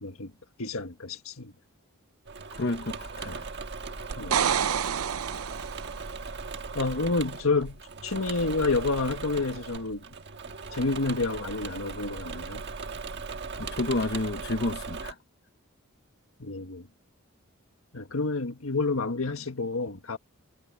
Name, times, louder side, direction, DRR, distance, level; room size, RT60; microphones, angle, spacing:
voice 1, 0.0-0.3 0.6-1.5 4.2-4.4 6.7-10.0 10.7-12.6 16.4-16.8 17.9-20.2, left 3 dB, 75° left, 1.7 m, -29 dB
Engine / Mechanisms, 2.2-15.1, right 4 dB, 55° right, 1.5 m, -38 dB
voice 2, 2.5-3.5 13.6-15.2, left 2 dB, 55° left, 1.1 m, -30 dB
sound 1, 4.1-6.0 9.7-9.8, right 8 dB, 85° right, 0.6 m, -28 dB
head